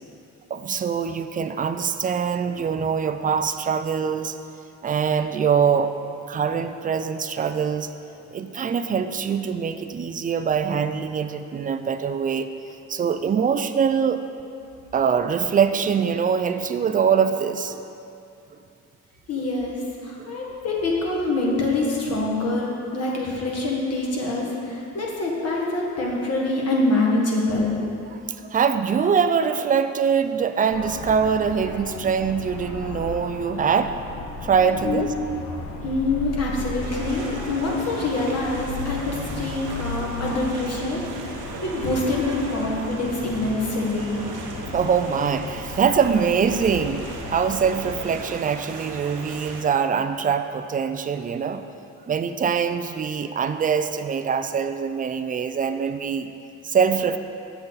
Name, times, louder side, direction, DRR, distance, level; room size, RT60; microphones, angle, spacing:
voice 1, 0.5-4.4 4.8-5.9 6.3-7.9 8.2-12.5 12.9-14.2 14.9-17.8 20.2-20.5 28.4-33.9 34.4-35.1 35.5-35.6 44.7-47.0 47.3-51.6 52.1-56.3 56.6-57.2, right 6 dB, 30° right, 9 dB, 0.4 m, -23 dB
voice 2, 19.3-27.9 34.8-35.1 35.8-44.2, left 2 dB, 55° left, -2 dB, 1.6 m, -25 dB
sound 1, 30.7-48.0, left 4 dB, 75° left, 0.8 m, -35 dB
sound 2, 36.8-49.6, right 3 dB, 90° right, 0.9 m, -38 dB
7.1 x 6.7 x 4.0 m, 2.6 s
cardioid pair, 90°, 30 cm